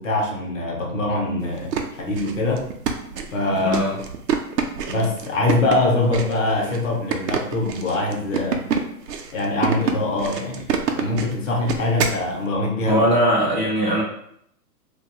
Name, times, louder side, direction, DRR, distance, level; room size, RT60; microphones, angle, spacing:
voice 1, 0.0-2.7 3.3-3.8 4.9-8.6 9.3-10.7 10.9-13.0, left 2 dB, 50° left, 0 dB, 0.8 m, -23 dB
sound 1, 1.5-12.2, right 6 dB, 80° right, 0.6 m, -27 dB
voice 2, 3.6-4.0 12.9-14.0, equal, 30° right, -8 dB, 0.5 m, -20 dB
2.7 x 2.3 x 2.8 m, 0.70 s
hypercardioid pair, 170°, 48 cm